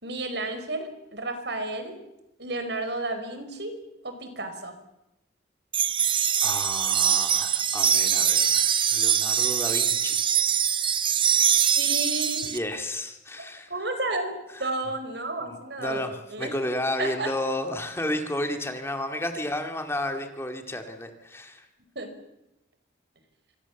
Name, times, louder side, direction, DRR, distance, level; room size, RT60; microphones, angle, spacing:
voice 1, 0.0-2.0 2.4-3.7 4.0-4.7 11.8-12.4 13.4-14.3 14.6-16.0 16.3-16.6 17.0-17.3 21.9-22.1, right 2 dB, 65° right, 8 dB, 4.8 m, -32 dB
sound 1, 5.7-12.6, right 8 dB, 25° right, 0.8 m, -23 dB
voice 2, 6.4-10.3 12.4-13.7 14.5-14.7 15.8-21.7, left 1 dB, 15° left, 5 dB, 2.2 m, -32 dB
26.5 x 24.5 x 7.2 m, 0.93 s
head